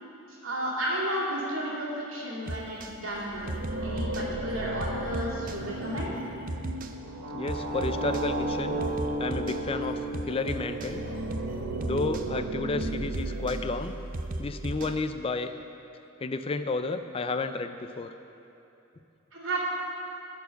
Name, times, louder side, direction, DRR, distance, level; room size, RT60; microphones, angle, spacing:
voice 1, 0.4-3.6 3.8-6.1 19.3-19.7, right 1 dB, 65° right, -6 dB, 2.5 m, -32 dB
sound 1, 2.5-2.9 3.5-4.3 4.8-5.6 6.0-6.2 6.5-6.9 7.5-8.3 8.8-9.6 10.1-10.9 11.3-11.5 11.8-12.3 12.8-15.0, right 1 dB, 40° right, 0.5 m, -36 dB
sound 2, 3.0-14.2, right 1 dB, 90° right, 0.9 m, -34 dB
voice 2, 7.3-8.8 9.2-11.0 11.8-13.9 14.4-15.5 16.2-18.2, left 3 dB, 25° left, 9 dB, 0.4 m, -31 dB
13.5 x 4.6 x 6.9 m, 2.9 s
head